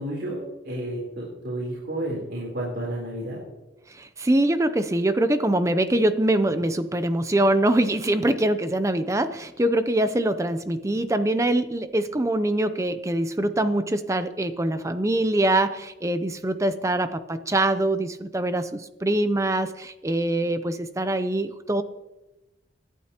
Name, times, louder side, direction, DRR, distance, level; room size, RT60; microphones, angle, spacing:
voice 1, 0.0-3.4, right 1 dB, 65° right, -4 dB, 3.7 m, -31 dB
voice 2, 3.9-21.8, right 1 dB, 15° right, 10 dB, 0.5 m, -24 dB
25.5 x 12.0 x 2.9 m, 1.0 s
head